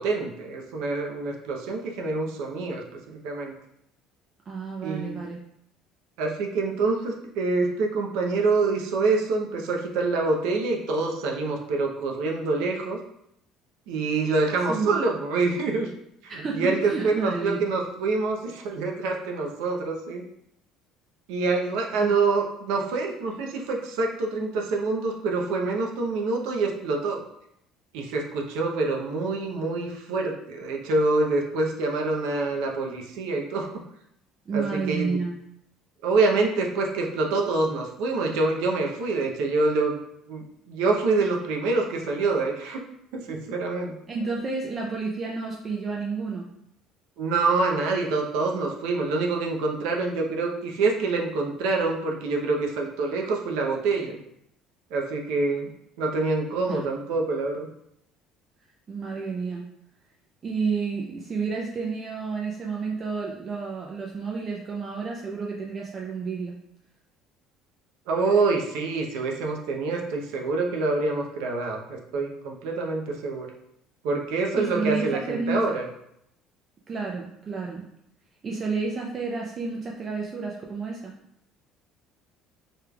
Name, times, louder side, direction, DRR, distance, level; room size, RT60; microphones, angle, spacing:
voice 1, 0.0-2.8 3.1-3.5 4.8-5.2 6.2-13.0 13.9-15.9 16.2-20.2 21.3-27.2 27.9-33.7 34.5-35.2 36.0-40.0 40.3-42.8 43.1-43.9 47.2-54.2 54.9-55.7 56.0-57.7 68.1-73.5 74.0-75.9, right 3 dB, 85° right, 0 dB, 0.7 m, -26 dB
voice 2, 4.5-5.4 14.7-15.0 16.3-17.6 22.0-22.1 34.5-35.4 44.1-46.5 56.7-56.8 58.9-59.7 60.4-66.6 74.6-75.7 76.9-77.8 78.4-81.1, right 4 dB, 25° right, -1 dB, 0.5 m, -30 dB
5.0 x 3.1 x 2.3 m, 0.75 s
cardioid pair, 155°, 0 cm